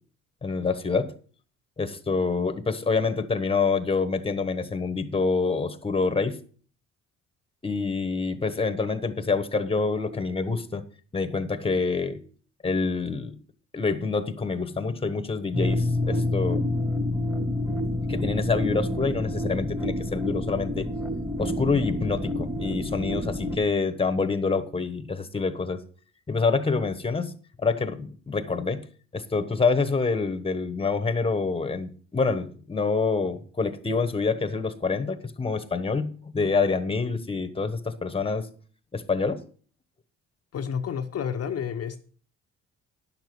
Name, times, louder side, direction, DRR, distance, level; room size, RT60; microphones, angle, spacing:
voice 1, 0.4-1.1 1.8-6.4 7.6-10.8 11.1-12.2 12.6-13.4 13.7-16.6 18.1-20.9 21.4-25.8 26.3-28.8 29.1-38.5 38.9-39.4, left 4 dB, 20° left, 1.2 m, -26 dB
sound 1, 15.5-23.6, left 1 dB, 5° right, 1.8 m, -28 dB
voice 2, 40.5-42.0, left 7 dB, 55° left, 0.8 m, -30 dB
10.5 x 6.8 x 6.1 m
cardioid pair, 90°, 30 cm